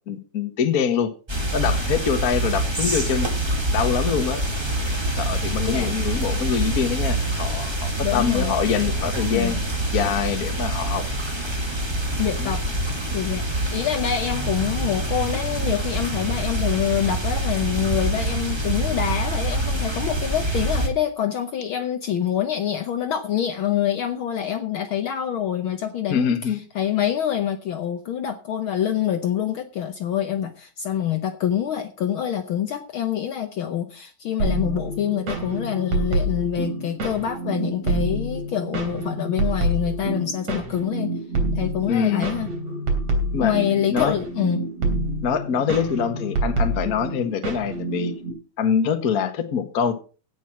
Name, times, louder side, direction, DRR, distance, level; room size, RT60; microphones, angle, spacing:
voice 1, 0.1-1.1 1.5-3.3 3.7-4.4 5.2-9.6 9.9-11.0 12.4-12.6 26.1-26.6 41.9-42.3 43.3-43.5 43.9-44.2 45.2-48.1 48.6-49.9, left 7 dB, 45° left, 8 dB, 1.3 m, -24 dB
sound 1, 1.3-20.9, right 1 dB, 15° right, 1.0 m, -25 dB
voice 2, 5.6-5.9 8.0-8.5 9.3-9.7 12.2-12.6 13.1-13.5 13.7-41.1 41.5-42.5 43.4-44.6, left 10 dB, 85° left, 8 dB, 1.1 m, -26 dB
sound 2, 34.4-48.3, right 2 dB, 60° right, 4.4 m, -27 dB
16.5 x 6.2 x 5.8 m, 0.36 s
omnidirectional pair, 3.6 m